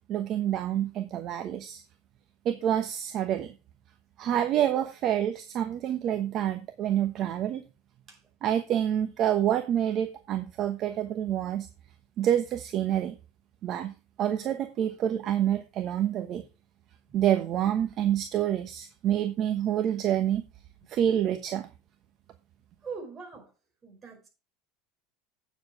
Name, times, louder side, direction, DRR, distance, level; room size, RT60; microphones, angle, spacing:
voice 1, 0.1-1.8 2.4-3.5 4.2-7.6 8.4-11.7 12.2-13.2 13.6-16.4 17.1-20.4 20.9-21.7, right 10 dB, 45° right, 1.1 m, -27 dB
voice 2, 22.8-23.5 23.8-24.3, right 5 dB, 25° right, 4.9 m, -41 dB
8.9 x 7.3 x 4.8 m
supercardioid pair, 130°, 0 cm